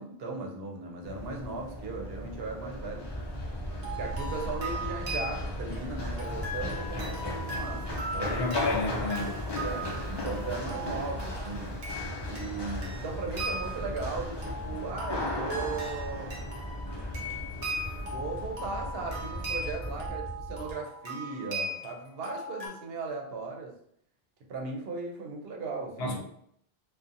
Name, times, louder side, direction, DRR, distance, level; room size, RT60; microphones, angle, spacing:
voice 1, 0.0-3.1 4.0-8.5 9.6-11.8 12.3-16.4 18.0-23.7 24.5-26.2, right 4 dB, 70° right, 1 dB, 0.8 m, -37 dB
Run, 1.0-20.1, left 1 dB, 45° left, 0.3 m, -38 dB
sound 1, 3.0-20.7, equal, 10° left, 1.0 m, -40 dB
sound 2, 3.7-22.7, right 1 dB, 40° right, 0.7 m, -39 dB
voice 2, 8.2-9.4 26.0-26.2, left 2 dB, 75° left, 0 dB, 0.8 m, -31 dB
2.6 x 2.2 x 2.5 m, 0.67 s
omnidirectional pair, 1.1 m